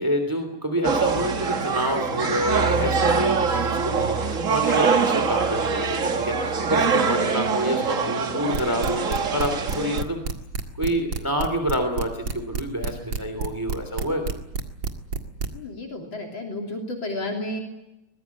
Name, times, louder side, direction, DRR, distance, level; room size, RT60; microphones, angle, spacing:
voice 1, 0.0-10.4 10.8-14.4, equal, 10° right, 6 dB, 2.8 m, -28 dB
sound 1, 0.8-10.0, right 5 dB, 40° right, 1.7 m, -24 dB
sound 2, 8.5-15.5, right 5 dB, 70° right, 2.7 m, -28 dB
voice 2, 15.5-17.6, left 2 dB, 70° left, 1 dB, 4.0 m, -32 dB
23.5 x 21.0 x 8.5 m, 0.91 s
omnidirectional pair, 2.3 m